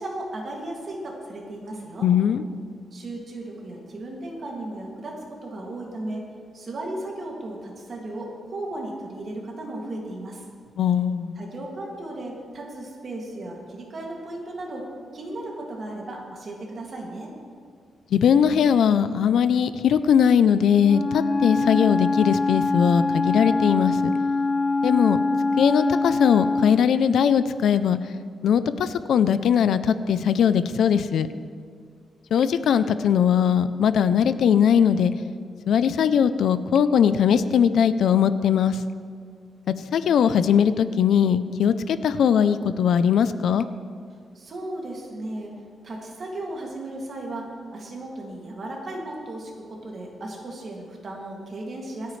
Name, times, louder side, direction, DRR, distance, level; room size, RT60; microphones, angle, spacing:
voice 1, 0.0-2.1 2.9-6.3 6.5-10.4 11.4-14.9 15.1-17.3 44.3-45.5 45.8-52.2, right 1 dB, 40° right, -2 dB, 2.4 m, -35 dB
voice 2, 2.0-2.4 10.8-11.4 18.1-24.0 24.8-25.2 25.6-28.0 28.4-31.3 32.3-35.1 35.7-38.8 39.7-43.7, left 8 dB, 70° left, 13 dB, 0.5 m, -20 dB
Wind instrument woodwind instrument, 20.8-26.8, left 3 dB, 40° left, 0.9 m, -24 dB
26.5 x 9.2 x 3.3 m, 2.1 s
wide cardioid pair, 165°, 0 cm